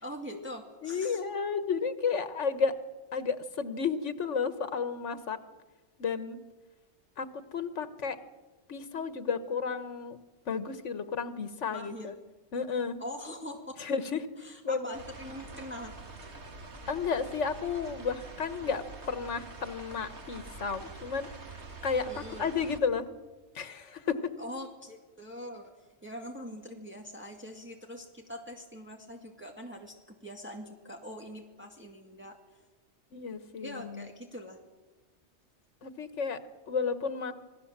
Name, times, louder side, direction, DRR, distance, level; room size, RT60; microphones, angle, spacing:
voice 1, 0.0-1.2 11.7-12.1 13.0-13.7 14.4-15.9 22.1-22.5 24.4-32.6 33.6-34.6, equal, 10° right, 1 dB, 2.1 m, -43 dB
voice 2, 0.8-2.8 3.1-5.4 6.0-6.4 7.2-8.2 8.7-10.2 10.5-12.1 12.5-13.0 13.8-14.3 14.6-15.0 16.9-21.3 21.8-23.0 23.5-24.2 33.1-34.1 35.8-36.4 36.7-37.3, left 5 dB, 85° left, 11 dB, 1.5 m, -32 dB
sound 1, 14.9-22.8, right 3 dB, 70° right, 2.2 m, -46 dB
27.5 x 19.0 x 7.4 m, 1.2 s
omnidirectional pair, 1.2 m